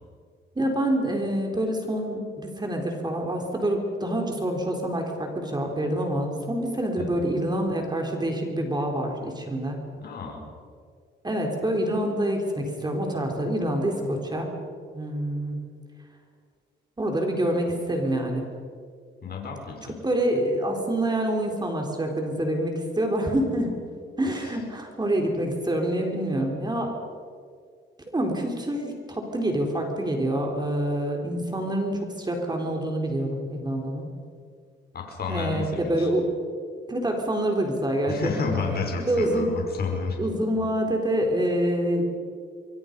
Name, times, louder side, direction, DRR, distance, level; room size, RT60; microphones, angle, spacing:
voice 1, 0.6-9.8 11.2-14.5 14.9-15.6 17.0-18.5 20.0-23.7 24.2-26.9 28.1-34.1 35.3-36.4 36.9-38.5 39.1-39.5 40.2-42.0, right 1 dB, 20° right, 2 dB, 4.3 m, -26 dB
voice 2, 10.0-10.4 19.2-19.8 34.9-36.1 38.1-40.2, left 5 dB, 50° left, 1 dB, 5.4 m, -31 dB
25.5 x 22.5 x 5.5 m, 2.1 s
cardioid pair, 90°, 20 cm